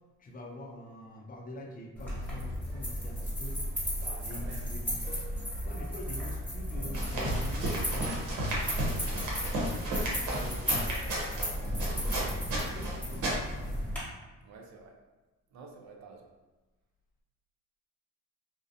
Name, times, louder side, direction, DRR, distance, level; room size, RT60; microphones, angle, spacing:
voice 1, 0.2-3.6 4.2-5.2 5.6-9.7 10.1-13.2, left 1 dB, 30° left, 0 dB, 0.4 m, -45 dB
sound 1, 2.0-14.0, equal, 5° left, 1.3 m, -34 dB
voice 2, 4.0-4.7 14.4-15.0 15.5-16.3, right 4 dB, 65° right, 2 dB, 0.5 m, -49 dB
sound 2, 6.9-13.7, right 1 dB, 85° right, 0.8 m, -34 dB
2.5 x 2.1 x 2.5 m, 1.1 s
cardioid pair, 90°, 30 cm